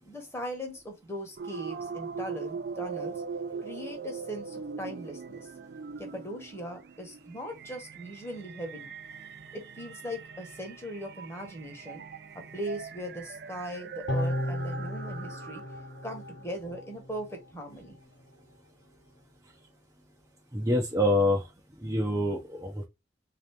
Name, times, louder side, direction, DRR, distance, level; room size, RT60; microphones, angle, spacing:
voice 1, 0.0-3.2 3.6-5.5 6.0-8.9 9.5-12.0 12.3-15.6 16.0-18.0, equal, 15° left, 1.2 m, -39 dB
sound 1, 1.4-15.9, right 5 dB, 60° right, 0.4 m, -41 dB
sound 2, 14.1-17.4 17.8-17.9, left 1 dB, 70° left, 0.8 m, -34 dB
voice 2, 20.5-21.4 21.8-22.9, left 1 dB, 15° right, 0.7 m, -26 dB
3.9 x 2.9 x 3.5 m
head